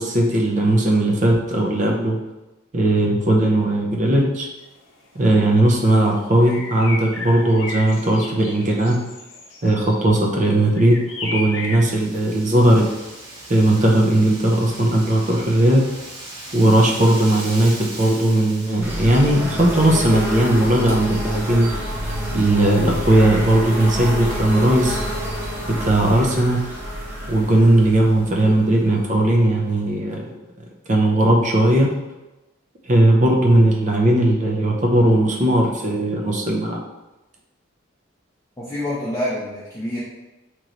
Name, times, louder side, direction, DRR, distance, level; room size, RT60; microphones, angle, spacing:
voice 1, 0.0-2.2 2.7-4.5 5.2-9.0 9.6-12.8 13.5-15.8 16.5-21.7 22.3-25.0 25.8-26.6 27.3-30.2 30.9-31.9 32.9-36.8, right 1 dB, 35° right, 0 dB, 0.6 m, -17 dB
sound 1, 4.6-4.7 5.2-5.3 5.5-5.9 6.4-11.9, left 2 dB, 70° left, 0.7 m, -34 dB
Wind, 12.0-20.4, right 1 dB, 85° right, 1.2 m, -38 dB
sound 2, 18.8-29.4, equal, 10° right, 0.9 m, -28 dB
voice 2, 38.6-40.0, left 1 dB, 15° left, -9 dB, 0.6 m, -27 dB
3.0 x 3.0 x 3.8 m, 1.0 s
head